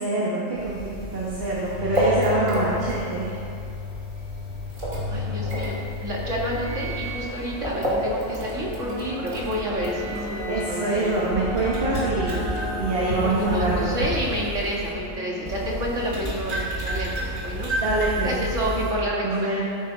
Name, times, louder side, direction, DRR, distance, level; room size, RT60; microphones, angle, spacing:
voice 1, 0.0-3.3 10.5-13.9 17.8-18.3 19.2-19.6, right 2 dB, 50° right, -5 dB, 1.7 m, -25 dB
sound 1, 0.5-14.9 15.5-18.9, equal, 85° right, 3.0 m, -30 dB
sound 2, 4.5-18.1, equal, ahead, 2.7 m, -36 dB
voice 2, 5.1-11.2 13.2-17.7 18.2-19.6, equal, 70° right, -4 dB, 2.5 m, -29 dB
13.5 x 8.8 x 5.4 m, 2.5 s
omnidirectional pair, 1.3 m